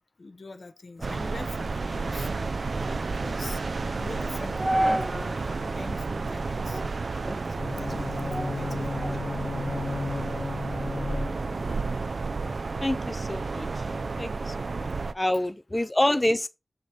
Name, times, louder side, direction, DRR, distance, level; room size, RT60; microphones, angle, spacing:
voice 1, 0.0-2.5 3.2-3.6 3.9-7.3 7.6-9.3, left 3 dB, 70° left, 0.8 m, -44 dB
sound 1, 1.0-5.4 5.8-5.9 6.5-6.9 7.2-9.3 9.7-12.2, right 1 dB, 5° right, 0.9 m, -34 dB
sound 2, 1.0-15.1, right 4 dB, 75° right, 0.4 m, -31 dB
Bowed string instrument, 7.5-11.7, left 4 dB, 90° left, 0.4 m, -35 dB
voice 2, 10.8-11.2 11.6-11.8 12.8-13.9 14.2-14.9 15.1-16.5, left 1 dB, 25° left, 0.3 m, -28 dB
6.4 x 5.1 x 3.9 m
wide cardioid pair, 70°, 0 cm